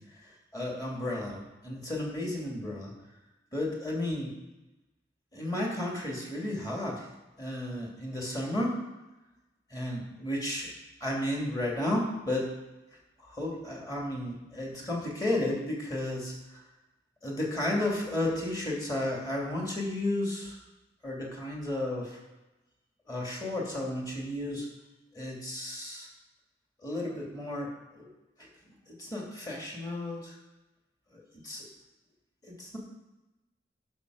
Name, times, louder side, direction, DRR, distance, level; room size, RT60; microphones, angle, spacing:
voice 1, 0.5-2.9 3.5-4.4 5.3-7.0 7.4-8.7 9.7-10.7 11.0-12.5 13.2-16.3 17.2-20.6 21.0-22.2 23.1-24.7 25.1-26.1 26.8-28.1 28.7-30.4 31.1-31.7 32.4-32.8, left 1 dB, 20° left, -3 dB, 2.7 m, -33 dB
11.0 x 6.1 x 6.5 m, 1.0 s
head